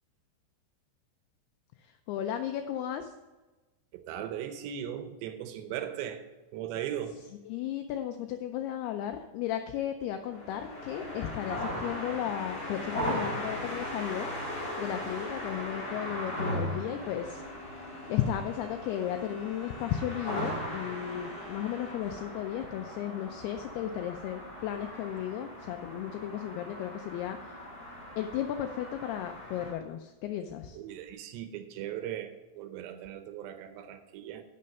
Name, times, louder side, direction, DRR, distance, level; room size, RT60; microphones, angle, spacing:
voice 1, 1.8-3.1 7.5-14.3 14.8-17.4 17.8-27.7 28.2-30.8, left 10 dB, 90° left, 7 dB, 2.2 m, -35 dB
voice 2, 3.9-6.2 6.5-7.2 30.7-34.4, right 10 dB, 80° right, 8 dB, 2.8 m, -38 dB
sound 1, 10.2-29.7, equal, 25° left, 3.8 m, -38 dB
11.0 x 6.6 x 5.3 m, 1.2 s
omnidirectional pair, 5.2 m